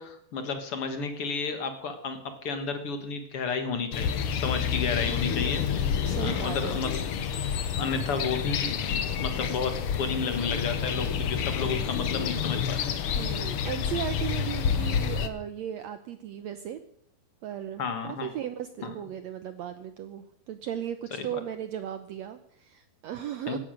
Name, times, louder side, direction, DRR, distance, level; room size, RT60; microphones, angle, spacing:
voice 1, 0.0-5.6 6.1-7.0 7.8-9.7 10.0-12.9 17.8-18.3 18.8-18.9 21.2-21.3 23.5-23.6, left 5 dB, 50° left, 8 dB, 2.1 m, -32 dB
sound 1, 3.9-15.3, left 7 dB, 75° left, 1.3 m, -29 dB
voice 2, 6.0-6.8 13.1-16.8 17.4-23.6, right 10 dB, 90° right, 10 dB, 1.5 m, -36 dB
17.0 x 12.5 x 6.5 m, 0.69 s
omnidirectional pair, 4.2 m